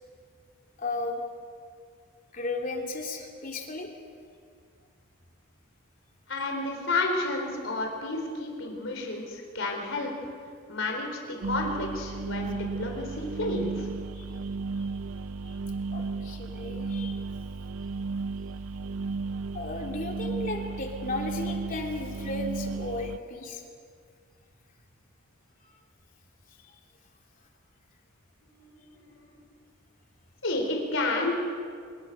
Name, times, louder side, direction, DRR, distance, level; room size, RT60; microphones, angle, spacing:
voice 1, 0.8-1.2 2.3-3.9 14.1-14.3 15.4-15.6 15.9-17.2 19.5-23.6, left 2 dB, 40° left, 1 dB, 3.2 m, -35 dB
voice 2, 6.3-10.1 10.7-13.9 28.5-29.4 30.4-31.4, left 2 dB, 65° left, 2 dB, 4.1 m, -31 dB
sound 1, 11.4-23.2, right 4 dB, 90° right, 0.6 m, -34 dB
25.0 x 21.5 x 6.8 m, 2.2 s
head